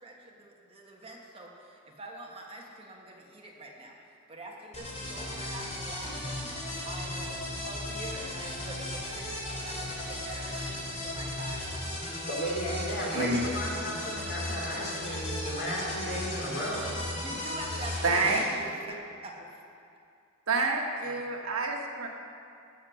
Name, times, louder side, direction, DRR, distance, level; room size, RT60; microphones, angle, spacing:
voice 1, 0.0-4.0 4.3-6.5 6.8-11.7 17.2-19.0 19.2-19.6, right 1 dB, 25° right, -1 dB, 1.4 m, -45 dB
sound 1, 4.7-18.4, left 1 dB, 35° left, 3.1 m, -36 dB
voice 2, 12.3-16.9, equal, 55° left, -3 dB, 3.1 m, -34 dB
voice 3, 18.0-18.4 20.5-22.1, right 3 dB, 75° right, 0 dB, 1.5 m, -28 dB
15.5 x 6.7 x 6.4 m, 2.4 s
head